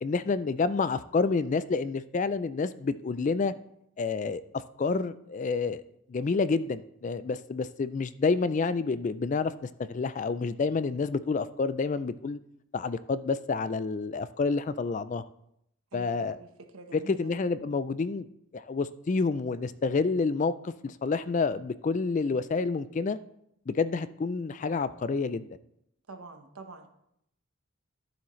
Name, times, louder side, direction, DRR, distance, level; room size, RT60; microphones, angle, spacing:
voice 1, 0.0-3.5 4.0-4.4 4.8-5.8 6.1-12.4 12.7-15.2 15.9-16.4 16.9-18.3 18.5-23.2 23.7-25.5, left 4 dB, 35° left, 14 dB, 0.3 m, -29 dB
voice 2, 15.9-17.3 26.1-26.9, right 3 dB, 90° right, 6 dB, 1.1 m, -46 dB
12.0 x 7.2 x 3.1 m, 0.76 s
head